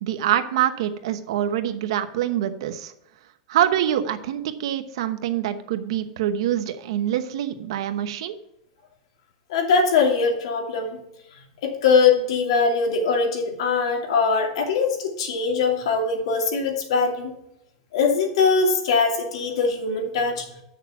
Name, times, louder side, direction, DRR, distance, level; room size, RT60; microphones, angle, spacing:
voice 1, 0.0-2.9 3.5-8.4, right 11 dB, 70° right, 9 dB, 1.0 m, -25 dB
voice 2, 9.5-11.0 11.6-17.3 17.9-20.4, left 5 dB, 80° left, 2 dB, 2.6 m, -21 dB
8.6 x 6.5 x 5.8 m, 0.80 s
supercardioid pair, 165°, 3 cm